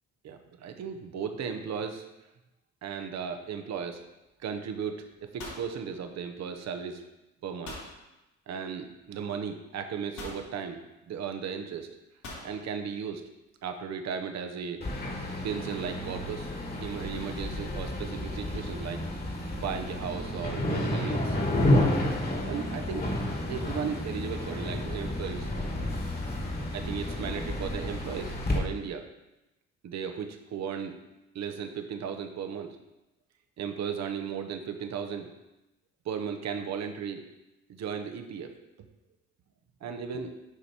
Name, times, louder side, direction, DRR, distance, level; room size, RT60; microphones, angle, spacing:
voice 1, 0.2-2.1 2.8-4.0 4.4-5.0 5.3-7.0 7.4-7.8 8.5-10.8 11.1-11.9 12.4-13.2 13.6-14.8 15.4-16.5 16.8-19.1 19.5-21.4 22.4-23.1 23.5-25.5 26.7-29.1 29.8-31.0 31.3-32.8 33.6-35.3 36.0-37.2 37.8-38.5 39.8-40.3, right 7 dB, 60° right, 6 dB, 0.8 m, -35 dB
sound 1, 3.9-4.1 4.4-4.8 5.0-6.6 7.7-8.0 9.1-9.2 10.2-10.5 12.2-12.5, left 2 dB, 70° left, 2.8 m, -43 dB
sound 2, 14.8-28.6, left 1 dB, 30° left, 1.6 m, -31 dB
7.4 x 5.0 x 4.4 m, 0.96 s
cardioid pair, 90°, 30 cm